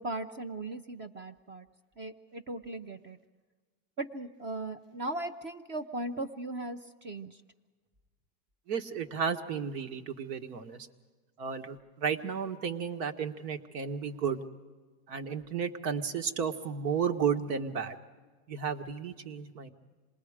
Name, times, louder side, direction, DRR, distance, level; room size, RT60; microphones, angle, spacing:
voice 1, 0.0-1.7 2.0-3.2 4.0-7.4, right 2 dB, 25° right, 8 dB, 0.6 m, -38 dB
voice 2, 8.7-10.9 11.4-14.4 15.1-18.0 18.5-19.7, right 6 dB, 80° right, 7 dB, 1.7 m, -33 dB
27.0 x 20.5 x 5.0 m, 1.4 s
supercardioid pair, 145°, 48 cm